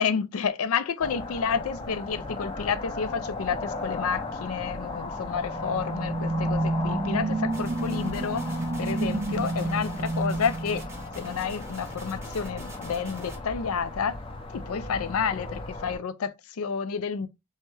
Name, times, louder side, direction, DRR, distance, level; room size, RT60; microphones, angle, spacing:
voice 1, 0.0-10.8 11.2-14.2 14.5-17.3, left 6 dB, 75° left, 0.4 m, -30 dB
sound 1, 1.0-16.0, left 2 dB, 25° left, 0.5 m, -37 dB
sound 2, 5.1-11.6, right 2 dB, 30° right, 0.3 m, -30 dB
sound 3, 7.5-13.4, right 1 dB, 10° right, 0.7 m, -45 dB
3.3 x 3.1 x 3.1 m
head